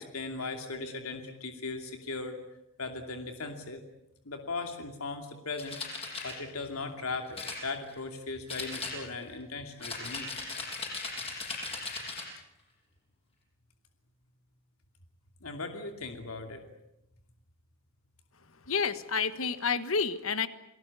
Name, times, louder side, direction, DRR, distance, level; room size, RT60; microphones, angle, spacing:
voice 1, 0.0-2.4 2.8-3.8 4.2-5.8 6.2-10.3 15.4-16.6, left 3 dB, 85° left, 5 dB, 2.7 m, -38 dB
sound 1, 5.6-6.4 7.3-8.2 8.5-9.3 9.8-12.3, left 3 dB, 25° left, 7.6 m, -38 dB
voice 2, 18.6-20.5, left 5 dB, 70° left, 12 dB, 1.5 m, -29 dB
29.0 x 19.0 x 8.4 m, 0.84 s
head